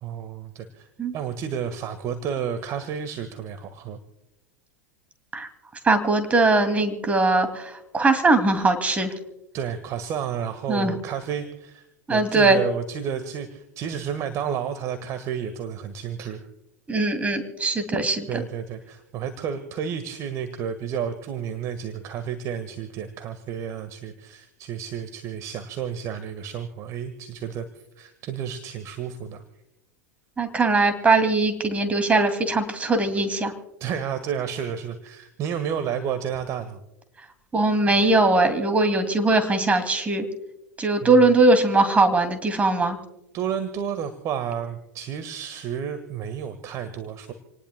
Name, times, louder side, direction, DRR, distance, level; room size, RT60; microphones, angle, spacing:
voice 1, 0.0-0.9 1.1-4.0 9.5-16.5 18.3-27.6 28.0-29.4 33.8-36.8 41.0-41.3 43.3-47.3, right 8 dB, 40° right, 9 dB, 1.5 m, -31 dB
voice 2, 5.8-9.1 10.7-10.9 12.1-12.6 16.9-18.4 30.4-33.5 37.5-40.3 40.8-43.0, right 2 dB, 15° right, 8 dB, 2.4 m, -20 dB
28.5 x 19.0 x 2.2 m, 0.92 s
figure-of-eight pair, 90°, 9 cm